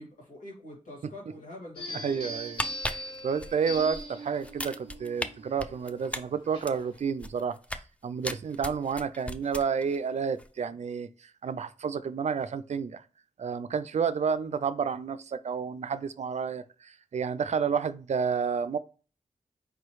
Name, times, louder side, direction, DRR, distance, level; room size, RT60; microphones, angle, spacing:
voice 1, 0.0-2.4, left 1 dB, 70° left, 2.0 m, -45 dB
sound 1, 1.8-7.0, equal, 40° left, 1.9 m, -41 dB
voice 2, 2.0-13.0 13.4-18.8, right 6 dB, 55° right, 0.4 m, -30 dB
sound 2, 2.4-4.0 4.4-5.3 5.6-7.9 8.2-10.0 10.3-10.5, left 1 dB, 10° left, 0.4 m, -36 dB
4.7 x 3.0 x 3.1 m
cardioid pair, 45°, 14 cm